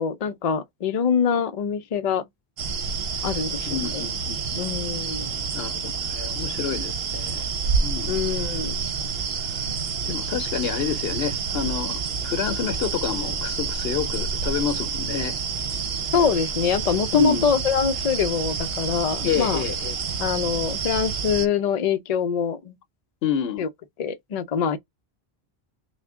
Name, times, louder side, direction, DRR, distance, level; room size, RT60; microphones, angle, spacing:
voice 1, 0.0-2.2 3.2-4.0 4.5-5.3 8.1-8.7 16.1-19.6 20.2-22.8 23.6-23.7 24.0-24.8, left 6 dB, 45° left, 0.6 m, -24 dB
sound 1, 2.6-21.5, right 5 dB, 75° right, 1.0 m, -28 dB
voice 2, 3.7-4.6 5.5-7.5 7.8-8.2 10.1-15.4 17.1-17.5 19.2-20.0 23.2-23.6, left 8 dB, 75° left, 0.9 m, -29 dB
5.9 x 2.2 x 3.5 m
omnidirectional pair, 1.0 m